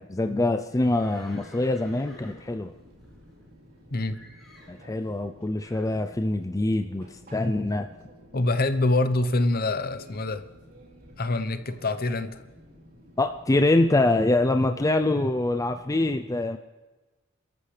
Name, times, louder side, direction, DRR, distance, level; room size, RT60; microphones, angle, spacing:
voice 1, 0.0-2.7 4.7-7.9 13.2-16.6, left 2 dB, 15° left, 7 dB, 0.5 m, -24 dB
Livestock farm animals working animals, 0.7-3.8 4.1-4.8 5.6-6.0, left 1 dB, ahead, 5.5 m, -51 dB
Fixed-wing aircraft airplane, 0.7-16.0, equal, 45° right, 3.6 m, -52 dB
voice 2, 8.3-10.4 11.2-12.4, left 2 dB, 45° left, 11 dB, 0.9 m, -25 dB
29.0 x 13.5 x 3.3 m, 1.2 s
head